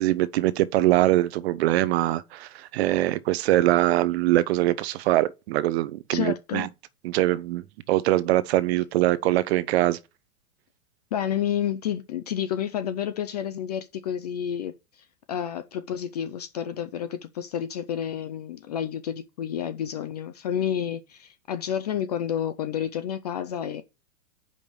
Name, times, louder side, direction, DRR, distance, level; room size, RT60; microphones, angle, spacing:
voice 1, 0.0-6.7 7.0-7.6 7.9-10.0, right 15 dB, 45° right, 0.7 m, -23 dB
voice 2, 6.1-6.7 11.1-23.8, left 9 dB, 30° left, 0.4 m, -30 dB
5.3 x 5.3 x 6.1 m
hypercardioid pair, 145°, 45 cm